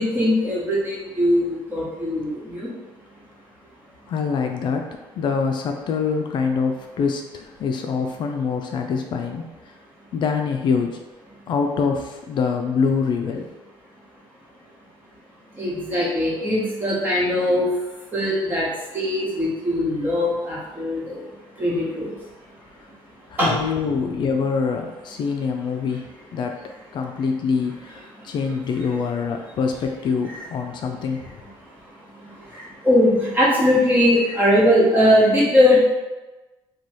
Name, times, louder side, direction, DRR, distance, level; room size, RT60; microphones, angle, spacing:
voice 1, 0.0-2.7 15.6-17.7 18.1-18.7 18.9-21.2 21.6-22.1 23.4-23.5 28.8-28.9 30.3-30.4 32.8-35.8, left 1 dB, 20° right, -7 dB, 1.3 m, -20 dB
voice 2, 4.1-9.5 10.1-11.0 11.5-13.4 23.3-26.1 26.3-26.6 26.9-31.2, left 5 dB, 55° left, 3 dB, 0.4 m, -25 dB
3.1 x 2.3 x 4.0 m, 1.1 s
cardioid pair, 120°, 10 cm